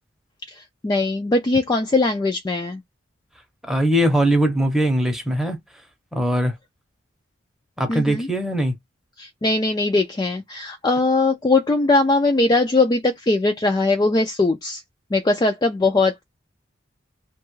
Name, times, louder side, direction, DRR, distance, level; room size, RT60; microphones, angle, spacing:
voice 1, 0.5-2.8 7.9-8.3 9.2-14.8 15.1-16.2, left 2 dB, 20° left, 0.3 m, -20 dB
voice 2, 3.6-5.6 6.1-6.5 7.8-8.8, right 1 dB, ahead, 0.7 m, -20 dB
2.9 x 2.3 x 3.0 m
head